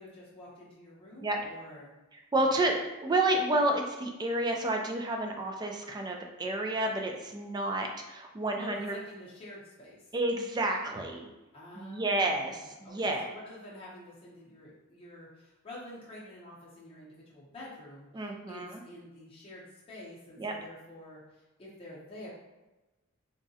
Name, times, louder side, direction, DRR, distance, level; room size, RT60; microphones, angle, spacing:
voice 1, 0.0-1.9 2.4-2.5 8.6-10.0 11.5-22.3, left 1 dB, 25° left, -7 dB, 0.7 m, -48 dB
voice 2, 2.3-8.9 10.1-11.3 11.8-13.3 18.1-18.8 20.4-20.5, right 2 dB, 20° right, 2 dB, 0.3 m, -30 dB
3.6 x 2.1 x 2.7 m, 1.1 s
head